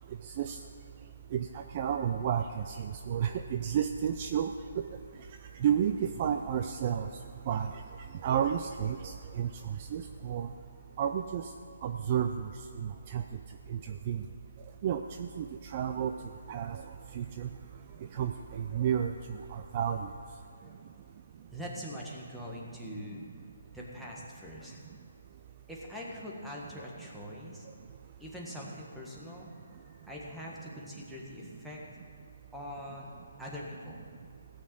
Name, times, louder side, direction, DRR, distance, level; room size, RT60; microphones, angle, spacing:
voice 1, 1.7-2.6 3.1-4.5 5.6-5.9 6.2-7.1 7.5-7.7 8.2-9.0 9.4-9.5 9.9-10.5 11.0-11.4 11.8-12.3 13.1-13.2 13.7-13.8 14.1-14.2 14.8-15.5 15.7-16.1 16.5-16.8 17.2-17.5 18.2-18.3 18.7-19.1 19.5-20.0, right 9 dB, 30° right, 7 dB, 0.4 m, -30 dB
voice 2, 21.5-23.2 23.7-24.8 25.7-27.7 28.2-29.8 30.1-31.8 32.5-33.1 33.4-34.0, equal, ahead, -4 dB, 1.5 m, -43 dB
16.5 x 6.4 x 7.6 m, 2.3 s
hypercardioid pair, 165°, 0 cm